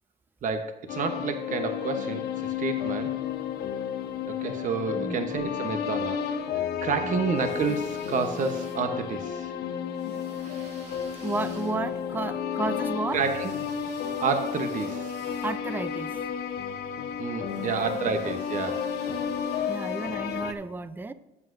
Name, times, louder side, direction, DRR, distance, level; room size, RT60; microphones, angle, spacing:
voice 1, 0.4-3.2 4.2-6.2 6.5-9.5 10.4-10.7 13.1-13.5 14.2-15.2 17.2-18.9, right 5 dB, 50° right, 7 dB, 1.0 m, -30 dB
sound 1, 0.9-20.5, left 8 dB, 75° left, 1.0 m, -32 dB
sound 2, 7.3-9.2 9.9-16.3 17.5-20.5, right 4 dB, 85° right, 2.1 m, -53 dB
voice 2, 11.2-13.2 15.4-16.2 17.6-18.0 19.7-21.1, right 3 dB, 10° right, 14 dB, 0.5 m, -33 dB
12.5 x 8.4 x 2.6 m, 0.98 s
cardioid pair, 110°, 17 cm